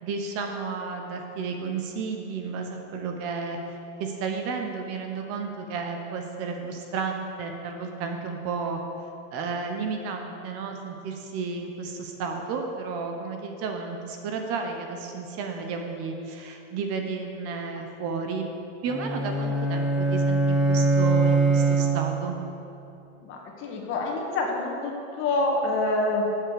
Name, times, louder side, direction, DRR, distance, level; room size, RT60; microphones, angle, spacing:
voice 1, 0.0-3.6 4.0-8.8 9.3-18.5 18.8-22.4, right 5 dB, 40° right, 3 dB, 1.2 m, -32 dB
sound 1, 18.9-22.4, right 3 dB, ahead, 0.5 m, -23 dB
voice 2, 23.2-26.3, left 2 dB, 35° left, 0 dB, 1.7 m, -27 dB
9.7 x 7.8 x 7.0 m, 2.8 s
supercardioid pair, 145°, 36 cm